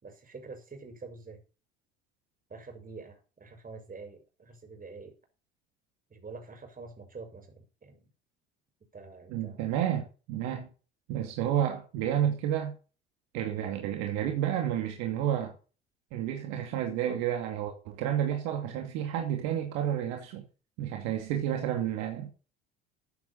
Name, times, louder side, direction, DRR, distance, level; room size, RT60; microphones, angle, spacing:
voice 1, 0.0-1.4 2.5-5.2 6.1-8.1 8.9-9.6, right 4 dB, 30° right, 6.1 m, -46 dB
voice 2, 9.3-10.7 11.1-12.7 13.3-15.5 16.1-20.4 20.8-22.3, right 10 dB, 65° right, 2.6 m, -30 dB
14.5 x 9.1 x 4.3 m
hypercardioid pair, 65°, 30 cm